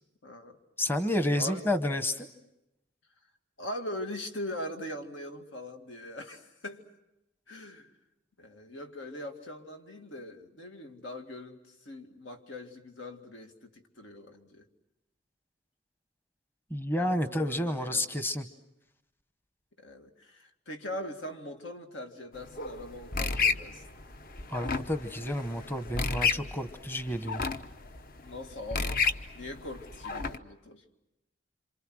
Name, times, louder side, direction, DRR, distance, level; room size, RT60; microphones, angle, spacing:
voice 1, 0.2-0.6 1.3-1.6 3.6-6.9 7.5-8.0 8.4-14.7 17.0-18.2 19.8-23.8 28.2-30.8, left 1 dB, 85° left, 4 dB, 2.3 m, -41 dB
voice 2, 0.8-2.3 16.7-18.5 24.5-27.4, left 1 dB, 10° left, 9 dB, 0.9 m, -30 dB
sound 1, 22.3-30.4, left 4 dB, 50° left, 0.9 m, -33 dB
28.0 x 26.5 x 6.3 m, 0.89 s
head